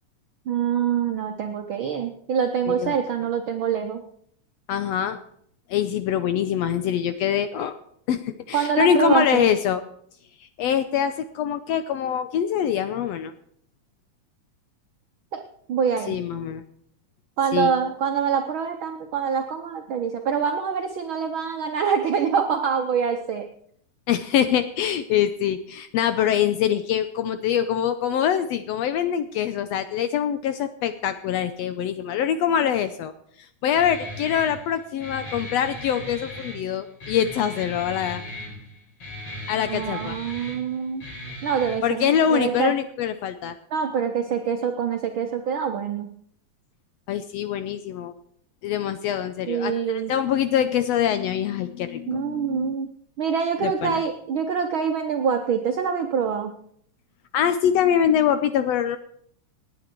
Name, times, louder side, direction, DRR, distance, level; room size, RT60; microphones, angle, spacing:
voice 1, 0.5-4.0 8.5-9.5 15.3-15.4 15.7-16.2 17.4-23.5 39.7-41.0 41.4-42.7 43.7-46.1 49.5-50.1 52.1-52.9 53.2-56.5, right 7 dB, 75° right, 5 dB, 1.1 m, -25 dB
voice 2, 4.7-5.2 5.7-7.8 8.1-9.8 10.4-13.3 16.1-16.6 17.5-17.7 24.1-33.1 33.4-38.2 39.5-40.2 41.8-43.5 47.1-48.1 48.6-52.7 53.6-54.0 57.3-59.0, left 9 dB, 75° left, 11 dB, 1.6 m, -24 dB
Guitar, 33.7-41.7, left 1 dB, 50° left, 6.4 m, -38 dB
18.5 x 9.2 x 4.5 m, 0.65 s
omnidirectional pair, 3.5 m